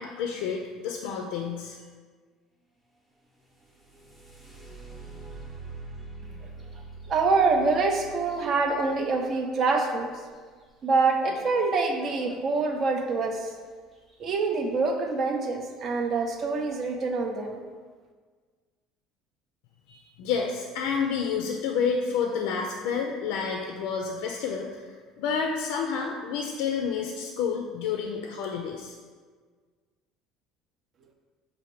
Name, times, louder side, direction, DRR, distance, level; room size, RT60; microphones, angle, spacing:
voice 1, 0.0-1.8 19.9-28.9, left 6 dB, 80° left, 2 dB, 0.4 m, -30 dB
sound 1, 3.4-11.3 13.3-13.5 13.9-14.5 15.1-15.2 15.7-16.0, right 3 dB, 10° right, 0.8 m, -45 dB
voice 2, 7.1-10.1 10.8-13.5 14.2-17.6, right 4 dB, 40° right, 4 dB, 0.5 m, -25 dB
5.5 x 2.5 x 3.2 m, 1.5 s
cardioid pair, 125°, 0 cm